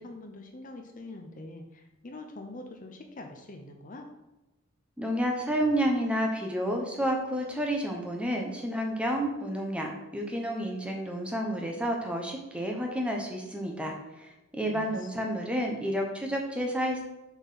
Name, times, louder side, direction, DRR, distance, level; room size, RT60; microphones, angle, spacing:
voice 1, 0.0-4.1 14.7-15.1, left 2 dB, 40° left, 4 dB, 0.8 m, -44 dB
voice 2, 5.0-17.0, equal, 5° right, 1 dB, 1.0 m, -30 dB
6.9 x 4.5 x 5.7 m, 0.99 s
head